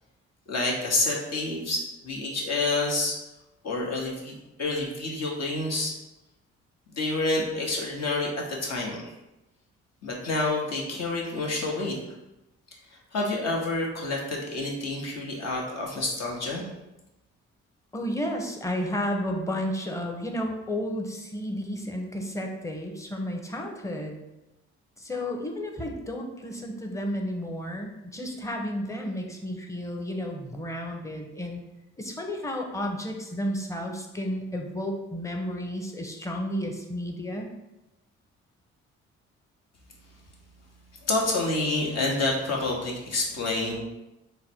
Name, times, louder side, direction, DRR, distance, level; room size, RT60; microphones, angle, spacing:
voice 1, 0.5-3.2 3.6-4.3 4.6-5.9 6.9-9.1 10.0-12.0 13.1-16.6 41.0-43.7, left 2 dB, 60° left, -2 dB, 1.1 m, -28 dB
voice 2, 17.9-24.2 25.0-31.6 32.0-37.5, equal, 10° left, 2 dB, 0.8 m, -32 dB
3.9 x 2.2 x 4.4 m, 0.95 s
supercardioid pair, 60°, 30 cm